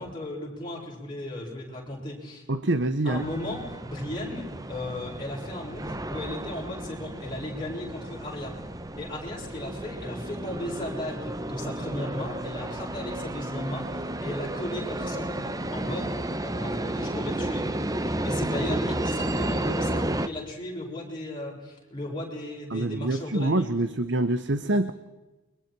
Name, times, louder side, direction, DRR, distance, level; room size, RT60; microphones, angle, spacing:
voice 1, 0.0-2.4 3.0-8.6 9.0-17.7 18.0-23.7, left 1 dB, 25° left, -3 dB, 7.4 m, -36 dB
voice 2, 2.5-3.3 22.7-24.9, right 2 dB, 65° right, 11 dB, 1.0 m, -25 dB
sound 1, 3.1-20.3, right 1 dB, 20° right, 0.9 m, -32 dB
29.5 x 24.0 x 4.7 m, 1.1 s
head